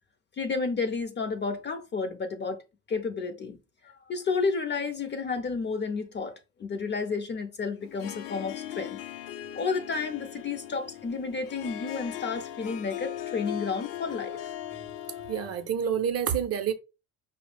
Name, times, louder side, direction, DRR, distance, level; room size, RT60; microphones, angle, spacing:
voice 1, 0.4-2.6 2.9-3.6 3.8-9.0 9.5-14.5, left 4 dB, 30° left, 0.5 m, -31 dB
Harp, 7.8-15.7, left 12 dB, 85° left, 0.6 m, -39 dB
voice 2, 14.9-16.7, right 8 dB, 40° right, 0.6 m, -29 dB
4.7 x 2.0 x 3.2 m
supercardioid pair, 95°, 40 cm